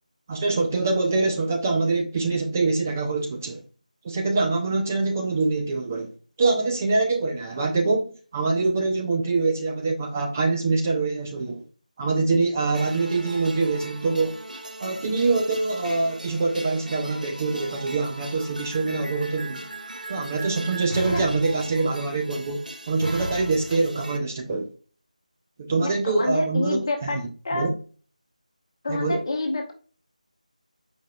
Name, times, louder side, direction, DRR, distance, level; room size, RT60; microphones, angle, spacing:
voice 1, 0.3-3.6 4.0-6.1 6.4-11.6 12.0-14.4 14.8-19.6 20.1-24.7 25.6-27.2 27.5-27.8 28.9-29.2, right 3 dB, 20° right, 0.4 m, -24 dB
sound 1, 12.7-24.2, right 1 dB, 90° right, 0.8 m, -37 dB
voice 2, 25.8-27.2 27.4-27.7 28.8-29.7, left 2 dB, 35° left, 1.1 m, -28 dB
5.0 x 4.0 x 2.3 m
figure-of-eight pair, 165°, 4 cm